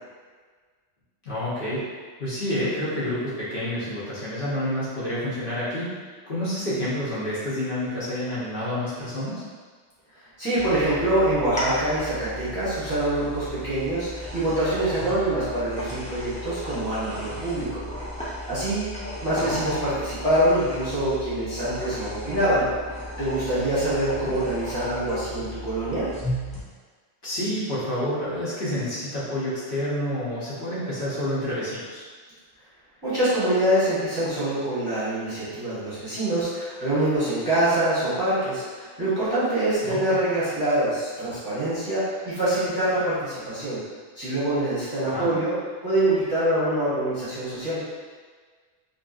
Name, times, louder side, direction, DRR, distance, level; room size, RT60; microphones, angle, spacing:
voice 1, 1.2-1.8 2.2-5.9 6.3-9.4 19.4-19.8 27.2-32.0 39.8-40.0 45.0-45.3, left 1 dB, 55° left, -10 dB, 1.0 m, -29 dB
voice 2, 10.4-17.8 18.5-18.9 19.2-22.7 23.2-26.1 33.0-43.8 44.2-45.5 45.8-47.8, right 1 dB, 25° right, -13 dB, 0.8 m, -25 dB
sound 1, 10.6-26.6, equal, 10° left, 0.3 m, -35 dB
2.7 x 2.7 x 2.4 m, 1.5 s
omnidirectional pair, 1.1 m